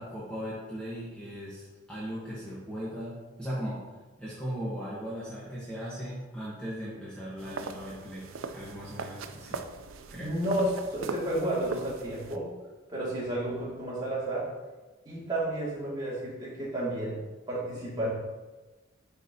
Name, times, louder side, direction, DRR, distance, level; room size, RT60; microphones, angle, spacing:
voice 1, 0.0-3.9 4.2-9.7 10.1-10.3, equal, 5° left, -8 dB, 1.2 m, -38 dB
sound 1, 7.4-12.4, right 4 dB, 85° right, 0.5 m, -39 dB
voice 2, 10.1-12.5 12.9-14.5 15.1-17.2 17.5-18.1, right 1 dB, 20° right, -8 dB, 2.2 m, -31 dB
9.9 x 4.1 x 2.8 m, 1.2 s
head